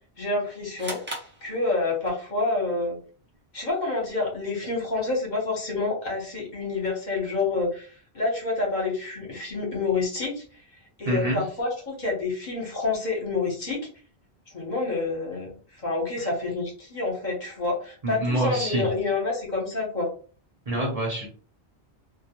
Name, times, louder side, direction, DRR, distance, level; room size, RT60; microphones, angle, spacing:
voice 1, 0.2-1.0 1.4-3.0 3.5-10.4 11.0-13.8 14.5-20.1, left 3 dB, 45° left, -2 dB, 0.9 m, -28 dB
sound 1, 0.8-2.2, right 1 dB, 20° right, 0.3 m, -38 dB
voice 2, 11.0-11.4 18.0-18.9 20.7-21.3, right 1 dB, 40° right, -2 dB, 0.7 m, -26 dB
2.2 x 2.0 x 2.8 m, 0.41 s
omnidirectional pair, 1.1 m